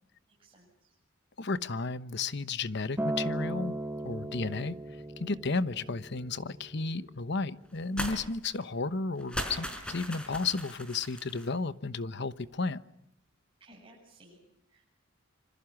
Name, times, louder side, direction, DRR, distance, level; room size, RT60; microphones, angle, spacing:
voice 1, 0.3-0.9 13.6-14.8, right 1 dB, 25° right, 8.0 m, -58 dB
voice 2, 1.4-3.8 4.0-4.8 5.2-12.8, left 3 dB, 60° left, 1.1 m, -33 dB
Acoustic guitar, 3.0-7.3 8.1-8.2, right 1 dB, 10° right, 1.1 m, -37 dB
sound 1, 8.0-8.2 8.5-8.6 9.2-11.5, equal, 5° left, 4.5 m, -38 dB
26.5 x 26.0 x 6.1 m
head